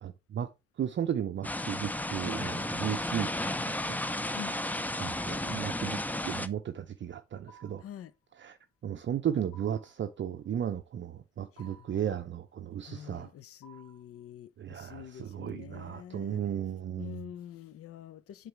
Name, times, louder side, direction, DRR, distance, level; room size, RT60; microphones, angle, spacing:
voice 1, 0.0-0.5 0.8-3.3 3.6-4.0 5.0-7.8 8.4-8.6 8.8-13.3 14.6-17.2, right 9 dB, 40° right, 0.6 m, -35 dB
sound 1, 1.4-6.5, left 1 dB, 5° left, 0.5 m, -33 dB
sound 2, 7.5-8.0 9.5-10.0 11.6-12.1 13.6-14.1, right 3 dB, 65° left, 2.7 m, -56 dB
voice 2, 7.8-8.1 11.5-11.9 12.9-16.4 17.0-18.5, left 10 dB, 50° left, 0.6 m, -46 dB
7.8 x 3.9 x 3.4 m
hypercardioid pair, 45°, 30 cm